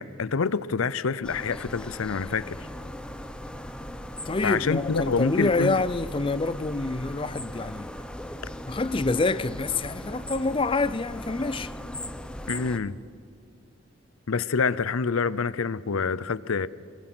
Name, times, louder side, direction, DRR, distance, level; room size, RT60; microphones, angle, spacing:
voice 1, 0.0-2.6 4.4-5.8 12.5-13.0 14.3-16.7, left 5 dB, 85° left, 0.6 m, -27 dB
sound 1, 1.2-12.8, left 1 dB, 5° left, 0.8 m, -38 dB
voice 2, 4.3-7.9 8.7-11.7, left 3 dB, 25° left, 0.5 m, -27 dB
23.5 x 22.0 x 6.1 m
head